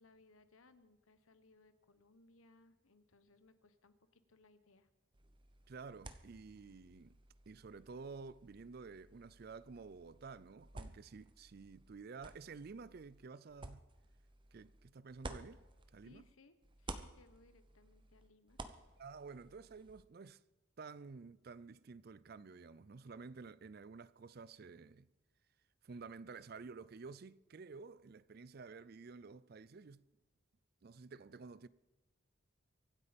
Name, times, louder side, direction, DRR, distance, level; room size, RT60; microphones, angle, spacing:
voice 1, 0.0-4.9 16.0-18.6, left 3 dB, 85° left, 1.2 m, -66 dB
sound 1, 5.1-16.3 16.6-20.0, right 2 dB, 25° right, 0.8 m, -54 dB
voice 2, 5.7-7.2 7.5-13.8 14.5-15.6 15.9-16.3 19.0-20.4 20.8-25.1 25.8-30.0 30.8-31.7, right 4 dB, 50° right, 0.4 m, -51 dB
24.5 x 8.4 x 5.2 m
head